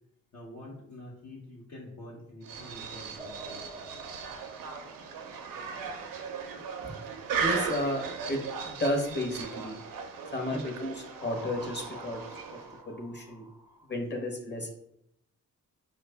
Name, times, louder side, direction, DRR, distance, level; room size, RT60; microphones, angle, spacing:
voice 1, 0.3-3.9 10.5-10.6, left 1 dB, 55° left, -4 dB, 1.0 m, -46 dB
sound 1, 2.4-12.8, right 6 dB, 90° right, 0.6 m, -37 dB
sound 2, 3.2-6.4 11.2-14.0, right 1 dB, 10° right, 0.4 m, -49 dB
voice 2, 7.4-9.8 10.3-10.9 11.2-13.5 13.9-14.7, left 1 dB, 30° left, 2 dB, 1.0 m, -33 dB
4.8 x 2.5 x 3.3 m, 0.77 s
cardioid pair, 70°, 33 cm